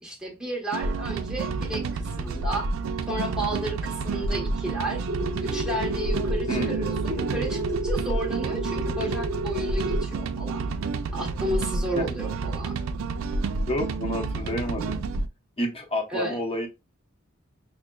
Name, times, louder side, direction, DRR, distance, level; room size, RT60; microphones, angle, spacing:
voice 1, 0.0-2.7 3.1-5.1 5.4-10.7 11.1-12.8 16.1-16.4, right 1 dB, 5° right, 1.0 m, -32 dB
sound 1, 0.7-15.3, right 3 dB, 80° right, 0.4 m, -29 dB
sound 2, 5.1-10.0, right 1 dB, 55° right, 0.8 m, -31 dB
voice 2, 6.5-6.8 12.0-12.1 13.7-15.0 15.6-16.7, left 1 dB, 30° left, 0.8 m, -29 dB
6.0 x 2.1 x 2.2 m
head